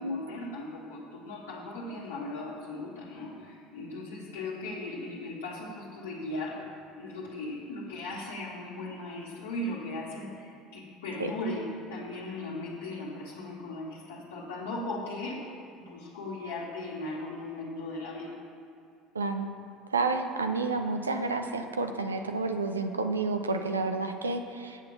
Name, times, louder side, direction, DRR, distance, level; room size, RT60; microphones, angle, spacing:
voice 1, 0.0-6.6 7.0-15.4 15.8-18.4, left 2 dB, 70° left, -7 dB, 1.6 m, -38 dB
voice 2, 19.1-19.5 19.9-24.8, right 3 dB, 85° right, 6 dB, 0.5 m, -30 dB
8.2 x 7.8 x 5.9 m, 2.4 s
figure-of-eight pair, 65°, 0 cm